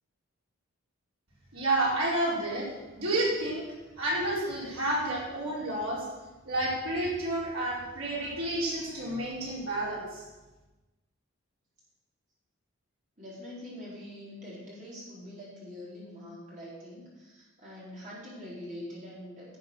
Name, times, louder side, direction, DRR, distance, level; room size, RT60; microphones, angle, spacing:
voice 1, 1.5-2.7 2.9-3.6 4.0-6.1 6.4-10.2, right 1 dB, 75° right, -5 dB, 4.5 m, -30 dB
voice 2, 13.2-19.6, left 1 dB, 35° right, -6 dB, 4.1 m, -44 dB
11.0 x 7.7 x 6.3 m, 1.1 s
head